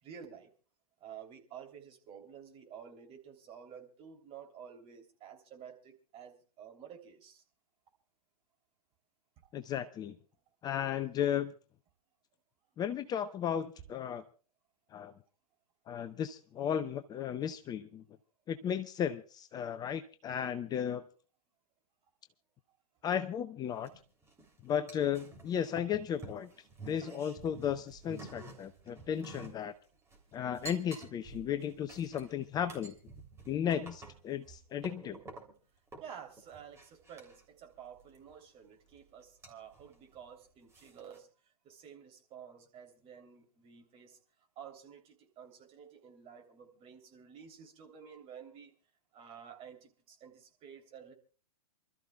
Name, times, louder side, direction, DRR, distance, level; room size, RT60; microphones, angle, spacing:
voice 1, 0.0-0.5 1.0-7.4 27.0-27.2 36.0-41.3 41.6-44.2 44.5-48.7 49.1-51.1, right 8 dB, 30° right, 3 dB, 3.4 m, -51 dB
voice 2, 9.5-10.2 10.6-11.5 12.8-14.2 14.9-15.1 15.9-18.0 18.5-21.0 23.0-23.9 24.6-26.5 26.9-29.7 30.3-32.9 33.5-35.2, left 9 dB, 20° left, 10 dB, 0.6 m, -35 dB
sound 1, 23.8-24.5 24.9-29.6 29.9-35.6 35.9-37.4 38.1-38.4 38.9-39.0 39.4-39.9 40.2-40.3 40.7-41.2, right 3 dB, 15° right, 3.4 m, -50 dB
28.5 x 13.5 x 2.4 m, 0.37 s
figure-of-eight pair, 110°, 21 cm